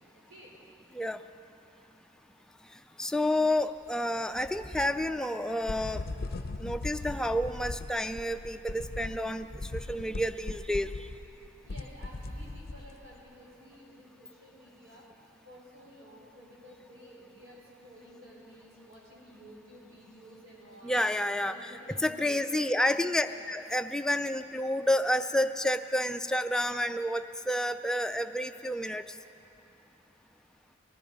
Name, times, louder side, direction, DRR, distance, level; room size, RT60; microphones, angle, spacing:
voice 1, 3.0-6.1 6.6-9.5 9.7-10.9 20.8-21.5 22.0-29.0, left 1 dB, 5° left, 7 dB, 0.3 m, -29 dB
sound 1, 3.2-13.8, equal, 20° right, 3.5 m, -50 dB
sound 2, 5.6-13.2, left 2 dB, 50° left, 0.6 m, -39 dB
voice 2, 11.6-15.1 15.4-21.0 21.4-22.6 23.1-23.5, equal, 75° right, -5 dB, 4.2 m, -52 dB
19.0 x 12.0 x 5.3 m, 2.9 s
head